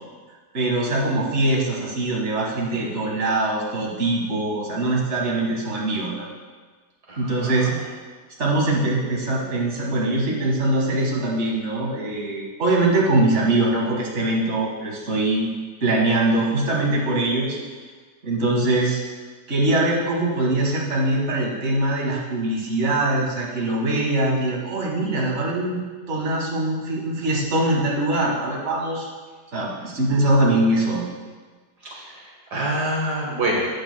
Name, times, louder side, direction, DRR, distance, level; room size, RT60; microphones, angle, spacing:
voice 1, 0.5-6.3 7.2-7.7 8.4-15.5 15.8-17.6 18.2-19.0 19.5-29.1 29.5-31.0, right 2 dB, 40° right, -3 dB, 1.9 m, -22 dB
voice 2, 7.1-7.8 31.8-33.7, right 1 dB, 65° right, -3 dB, 1.9 m, -27 dB
14.0 x 8.8 x 2.2 m, 1.5 s
omnidirectional pair, 1.9 m